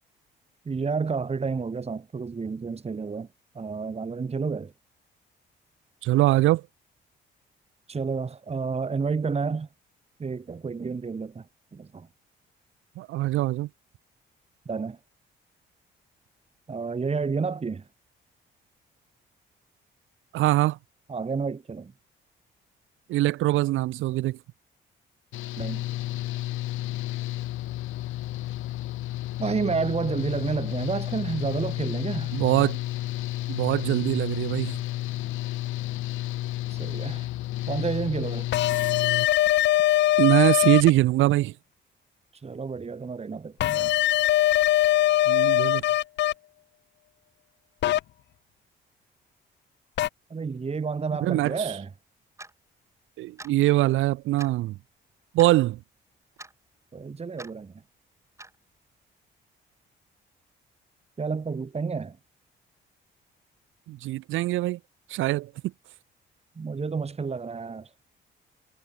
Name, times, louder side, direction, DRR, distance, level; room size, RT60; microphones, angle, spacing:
voice 1, 0.7-3.3 3.5-4.7 7.9-9.7 10.2-11.5 11.7-12.1 14.7-15.0 16.7-17.9 21.1-21.9 25.6-25.8 29.4-32.3 36.7-37.3 37.7-38.5 42.3-43.9 50.3-51.9 56.9-57.7 61.2-62.2 66.6-67.9, right 5 dB, 30° right, 2.3 m, -30 dB
voice 2, 6.0-6.6 13.0-13.7 20.3-20.8 23.1-24.4 32.3-32.8 33.5-34.8 40.2-41.5 45.3-45.8 51.2-51.7 53.2-54.8 55.3-55.8 63.9-64.8 65.1-65.5, right 16 dB, 90° right, 1.1 m, -23 dB
Engine / Mechanical fan, 25.3-39.3, left 15 dB, 85° left, 1.3 m, -32 dB
sound 1, 38.5-40.9 43.6-46.3 47.8-48.0 50.0-50.1, left 14 dB, 65° left, 0.4 m, -21 dB
Clock, 52.4-52.5 53.4-53.6 54.4-54.6 55.4-55.6 56.4-56.5 57.4-57.5 58.4-58.6, right 2 dB, 15° right, 2.8 m, -43 dB
cardioid pair, 90°, 20 cm